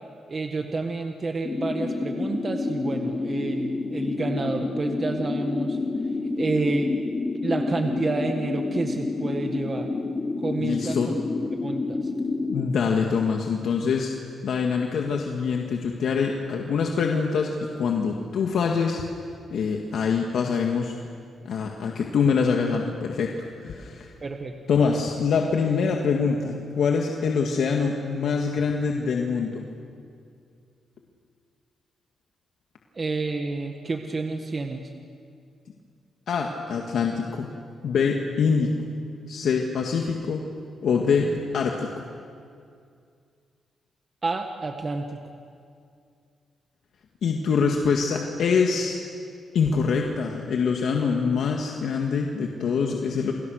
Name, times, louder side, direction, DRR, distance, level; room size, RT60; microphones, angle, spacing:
voice 1, 0.3-5.8 6.4-6.9 7.4-9.9 10.4-11.2 11.6-12.1 24.2-24.5 32.9-34.8 44.2-45.2, right 3 dB, 35° right, 4 dB, 1.6 m, -29 dB
sound 1, 1.4-12.7, left 3 dB, 30° left, 2.8 m, -28 dB
voice 2, 10.6-11.1 12.5-14.1 14.4-19.0 19.5-20.9 21.4-24.1 24.7-29.7 36.3-37.5 37.8-38.7 39.3-40.4 40.8-41.9 47.2-49.0 49.5-53.3, left 5 dB, 70° left, 1 dB, 2.0 m, -24 dB
29.0 x 24.5 x 6.5 m, 2.3 s
cardioid pair, 100°, 0 cm